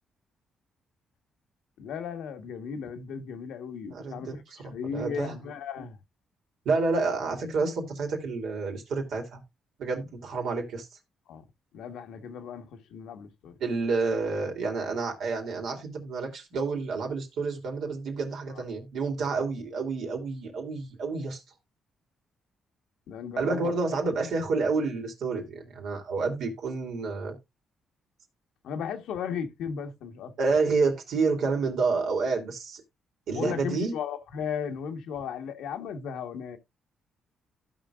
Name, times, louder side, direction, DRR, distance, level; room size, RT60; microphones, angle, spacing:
voice 1, 1.8-6.0 11.3-11.4 11.7-13.6 18.5-18.6 23.1-23.7 28.6-30.3 33.3-36.6, left 7 dB, 80° left, 1.3 m, -36 dB
voice 2, 3.9-5.3 6.6-9.4 9.8-10.9 13.6-21.4 23.4-27.4 30.4-32.8 33.3-33.9, right 4 dB, 75° right, 2.9 m, -29 dB
15.5 x 5.2 x 2.4 m
cardioid pair, 90°, 0 cm